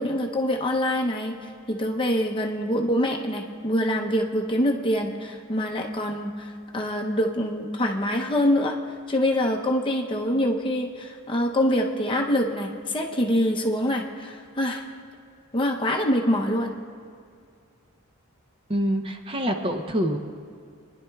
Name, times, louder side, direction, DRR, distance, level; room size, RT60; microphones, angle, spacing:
voice 1, 0.0-1.3 1.7-8.7 9.1-14.8 15.5-16.7, equal, 25° left, 1 dB, 0.7 m, -25 dB
voice 2, 18.7-20.2, equal, 25° right, 5 dB, 0.6 m, -26 dB
22.5 x 11.0 x 2.3 m, 2.3 s
head